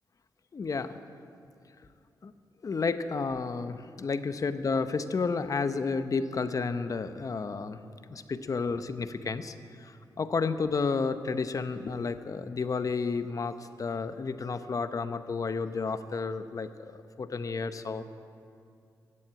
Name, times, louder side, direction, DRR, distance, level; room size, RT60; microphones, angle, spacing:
voice 1, 0.5-0.9 2.2-2.3 2.6-7.8 8.1-9.5 9.8-16.7 17.2-18.0, left 4 dB, 45° left, 11 dB, 0.8 m, -31 dB
15.0 x 7.7 x 8.9 m, 2.4 s
cardioid pair, 75°, 8 cm